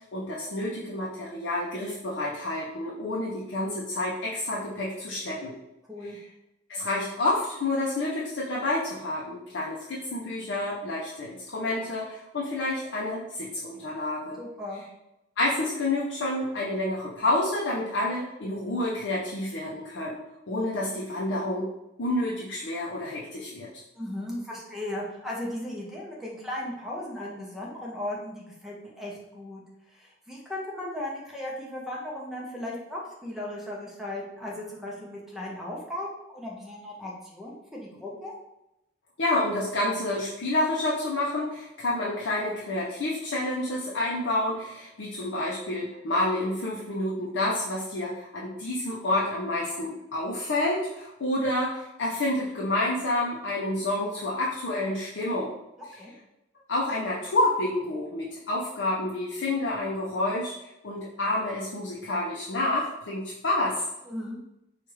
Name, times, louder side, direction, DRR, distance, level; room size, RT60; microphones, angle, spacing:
voice 1, 0.1-5.5 6.7-14.4 15.4-20.2 20.5-21.7 22.0-23.7 39.2-55.5 56.7-60.5 60.8-63.8, left 1 dB, 70° left, -4 dB, 0.5 m, -29 dB
voice 2, 14.4-14.8 23.9-38.3 56.0-56.1 64.0-64.4, left 1 dB, ahead, -4 dB, 0.7 m, -36 dB
4.5 x 2.4 x 3.1 m, 0.91 s
head